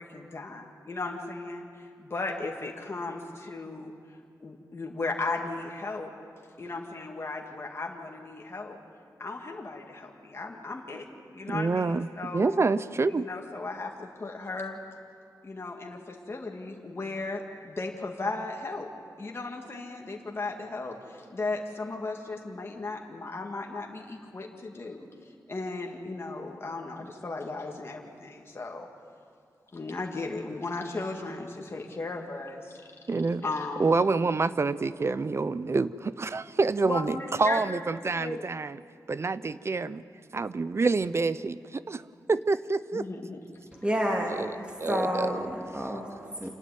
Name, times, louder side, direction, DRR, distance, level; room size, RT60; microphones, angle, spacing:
voice 1, 0.0-3.9 4.4-6.1 6.6-8.8 9.2-12.6 13.1-14.8 15.4-18.9 19.2-25.1 25.5-28.9 29.7-32.8 33.4-34.0 36.8-38.4 42.9-43.4, left 3 dB, 35° left, 1 dB, 2.2 m, -36 dB
voice 2, 11.5-13.3 33.1-33.5 33.8-38.8 39.1-40.0 40.3-42.0 42.3-43.0 44.4-44.5 44.8-45.4, right 3 dB, 40° right, 15 dB, 0.6 m, -27 dB
voice 3, 43.8-46.5, equal, 15° right, 0 dB, 2.4 m, -30 dB
27.5 x 12.0 x 9.4 m, 2.3 s
wide cardioid pair, 90°, 7 cm